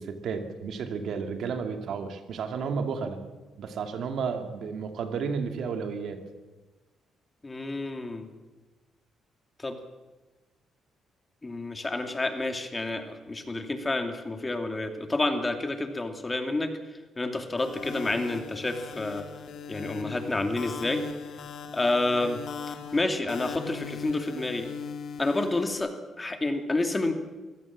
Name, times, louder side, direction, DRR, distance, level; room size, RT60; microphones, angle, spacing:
voice 1, 0.0-3.2 3.6-6.2, right 5 dB, 70° right, 6 dB, 2.5 m, -32 dB
voice 2, 7.4-8.3 9.6-9.8 11.4-16.7 17.2-19.3 19.7-21.0 21.7-22.4 22.9-24.7 25.2-27.1, left 2 dB, 20° left, 6 dB, 2.6 m, -29 dB
sound 1, 17.6-25.7, left 6 dB, 65° left, 2.9 m, -39 dB
24.5 x 16.5 x 7.4 m, 1.2 s
cardioid pair, 90°, 0 cm